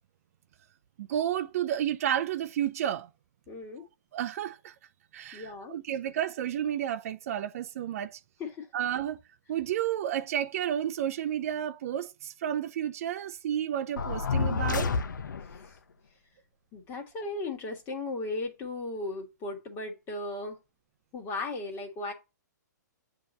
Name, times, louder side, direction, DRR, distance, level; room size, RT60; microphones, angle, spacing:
voice 1, 1.0-3.1 4.1-4.7 5.1-8.2 8.7-9.2 9.5-14.9, right 10 dB, 50° right, 0.4 m, -31 dB
voice 2, 3.5-3.8 5.3-5.7 8.4-8.7 15.5-15.8 16.7-20.6 21.1-22.1, left 2 dB, 20° left, 1.8 m, -36 dB
sound 1, 14.0-15.6, left 5 dB, 85° left, 0.7 m, -29 dB
7.5 x 2.9 x 5.2 m
hypercardioid pair, 145°, 10 cm